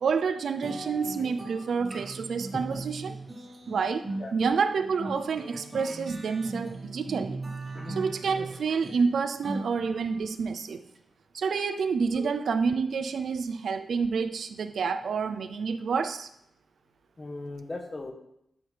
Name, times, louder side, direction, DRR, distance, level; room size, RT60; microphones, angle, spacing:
voice 1, 0.0-3.2 3.7-7.4 7.9-10.9 11.3-16.3, right 5 dB, 60° right, 11 dB, 0.4 m, -28 dB
sound 1, 0.6-10.3, right 2 dB, 25° right, 1.4 m, -39 dB
voice 2, 17.2-18.1, left 2 dB, 25° left, 3 dB, 1.0 m, -38 dB
12.0 x 5.7 x 3.3 m, 0.77 s
wide cardioid pair, 180°, 0 cm